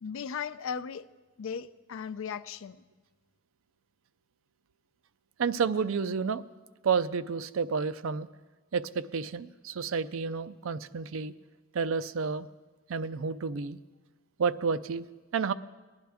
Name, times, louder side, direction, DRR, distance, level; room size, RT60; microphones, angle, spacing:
voice 1, 0.0-1.1 1.4-2.8, left 6 dB, 75° left, 14 dB, 0.4 m, -37 dB
voice 2, 5.4-6.4 6.8-8.3 8.7-11.3 11.7-12.5 12.9-13.8 14.4-15.1 15.3-15.5, right 5 dB, 75° right, 14 dB, 0.4 m, -30 dB
20.5 x 10.5 x 3.5 m, 1.3 s
head